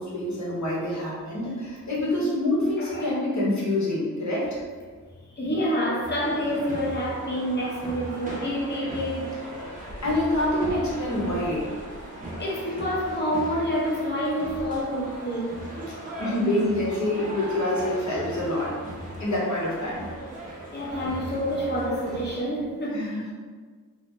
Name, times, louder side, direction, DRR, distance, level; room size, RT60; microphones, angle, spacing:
voice 1, 0.0-4.6 10.0-11.7 16.2-18.7 19.2-20.1 22.9-23.2, left 1 dB, 55° left, -6 dB, 1.1 m, -26 dB
voice 2, 2.8-3.1 5.4-9.4 12.4-15.6 20.7-23.1, equal, 30° left, -4 dB, 0.8 m, -28 dB
sound 1, 6.0-22.4, right 1 dB, 25° right, 0.8 m, -38 dB
2.9 x 2.7 x 3.2 m, 1.5 s
wide cardioid pair, 130°, 35 cm